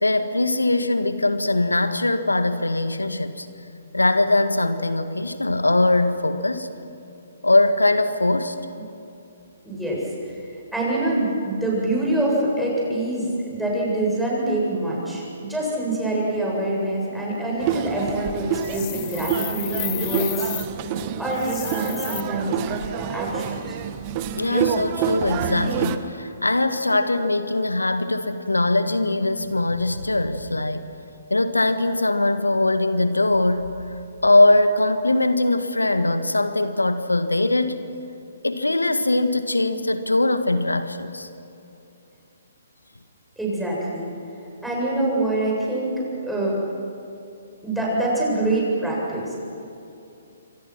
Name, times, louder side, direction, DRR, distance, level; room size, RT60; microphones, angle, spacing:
voice 1, 0.0-3.5 3.9-6.7 7.4-8.6 12.6-12.7 24.4-30.9 31.3-33.7 34.2-37.9 38.4-41.3, left 2 dB, 85° left, 10 dB, 1.6 m, -21 dB
voice 2, 9.6-10.0 10.7-20.5 21.2-23.8 43.4-44.1 44.6-46.6 47.6-49.4, right 1 dB, 5° right, -5 dB, 8.0 m, -25 dB
sound 1, 17.6-26.0, right 9 dB, 30° right, 1.4 m, -28 dB
sound 2, 18.6-20.7 21.3-22.2, left 20 dB, 30° left, 1.4 m, -32 dB
29.0 x 25.0 x 6.1 m, 2.7 s
figure-of-eight pair, 130°, 0 cm